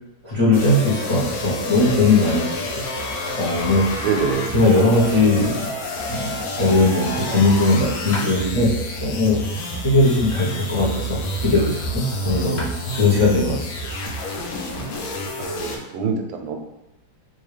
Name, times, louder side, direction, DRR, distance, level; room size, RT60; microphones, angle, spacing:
voice 1, 0.2-2.5 3.3-4.1 4.5-5.7 6.0-8.7 9.0-9.4 9.8-12.7 12.9-13.6, left 2 dB, 40° left, -9 dB, 0.4 m, -19 dB
sound 1, 0.5-15.8, equal, 85° left, 1.5 m, -29 dB
voice 2, 4.0-4.5 15.4-16.6, right 6 dB, 80° right, 4 dB, 1.3 m, -25 dB
sound 2, 8.1-8.4 10.3-11.6 12.2-12.3 12.6-12.8, left 1 dB, 65° left, 1.0 m, -37 dB
3.5 x 2.6 x 3.2 m, 0.90 s
omnidirectional pair, 2.2 m